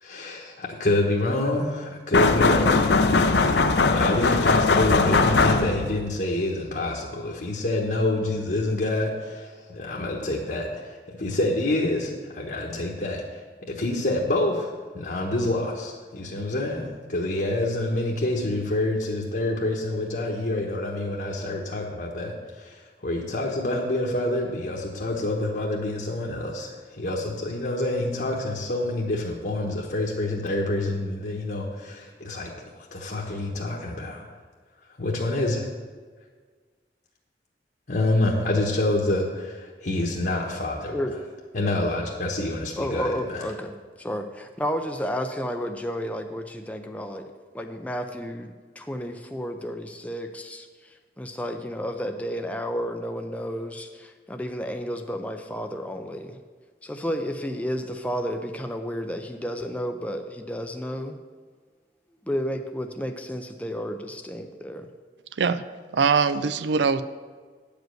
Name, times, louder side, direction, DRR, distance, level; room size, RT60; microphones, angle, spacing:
voice 1, 0.0-3.6 3.9-32.5 32.8-34.3 34.9-35.7 37.9-41.0 41.5-43.5, left 2 dB, 55° left, -2 dB, 1.1 m, -27 dB
sound 1, 2.1-6.0, left 3 dB, 70° left, 0.7 m, -20 dB
voice 2, 42.8-47.3 47.5-56.4 56.8-61.2 62.3-64.9, equal, 10° left, 5 dB, 0.5 m, -32 dB
voice 3, 65.3-65.6 65.9-67.0, right 5 dB, 75° right, 13 dB, 0.5 m, -22 dB
9.2 x 5.2 x 7.7 m, 1.5 s
head